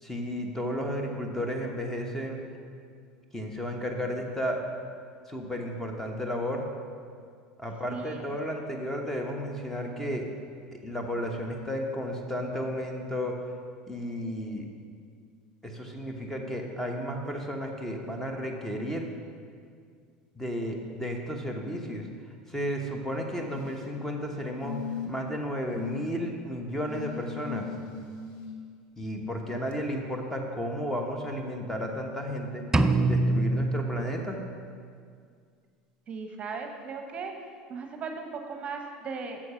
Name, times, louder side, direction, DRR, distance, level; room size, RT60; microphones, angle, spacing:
voice 1, 0.0-2.4 3.3-4.6 5.3-6.7 7.6-10.3 10.7-13.4 13.9-14.7 15.6-19.1 20.4-22.1 22.5-24.8 25.1-27.7 29.0-32.6 32.9-34.4, equal, 10° left, 2 dB, 1.0 m, -33 dB
voice 2, 7.9-8.4 36.1-37.3 37.7-39.4, right 5 dB, 35° right, 4 dB, 0.8 m, -37 dB
sound 1, 23.3-23.9 24.6-25.3 25.7-26.2 26.9-28.5 29.7-29.8, left 6 dB, 65° left, 1.3 m, -39 dB
sound 2, 32.7-34.7, right 2 dB, 15° right, 0.4 m, -25 dB
7.2 x 6.4 x 5.5 m, 2.1 s
supercardioid pair, 105°, 3 cm